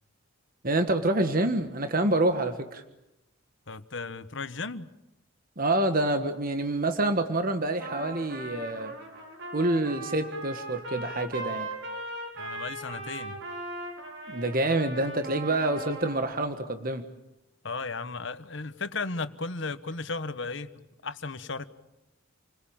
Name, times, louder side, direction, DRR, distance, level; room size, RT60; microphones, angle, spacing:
voice 1, 0.6-2.8 5.6-8.9 9.5-11.7 14.3-17.0, right 2 dB, 45° right, 7 dB, 1.5 m, -27 dB
voice 2, 3.7-4.9 12.4-13.4 17.6-20.7 21.0-21.7, left 3 dB, 60° left, 12 dB, 1.2 m, -35 dB
Trumpet, 7.8-16.3, right 1 dB, 60° right, 5.7 m, -39 dB
29.5 x 21.0 x 8.9 m, 0.91 s
head